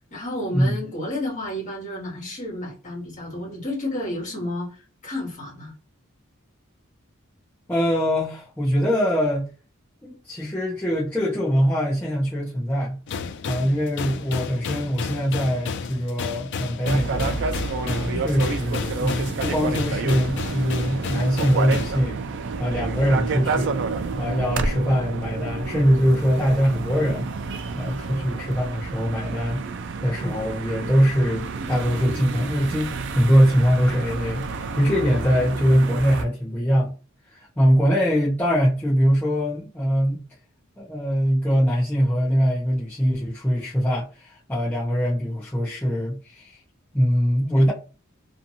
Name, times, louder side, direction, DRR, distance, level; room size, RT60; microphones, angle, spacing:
voice 1, 0.1-5.7 18.0-18.2 30.2-30.4, left 1 dB, 35° left, 1.4 m, -31 dB
voice 2, 7.7-9.5 10.0-13.0 13.4-17.4 17.8-22.2 22.6-23.8 24.2-27.3 27.7-29.6 30.0-34.5 34.8-36.9 37.3-40.2 40.8-46.6 46.9-47.7, equal, 10° left, 0.7 m, -22 dB
sound 1, 13.1-22.0, left 5 dB, 55° left, 0.3 m, -32 dB
sound 2, 16.8-36.2, right 4 dB, 60° right, 0.4 m, -29 dB
2.7 x 2.5 x 2.7 m
head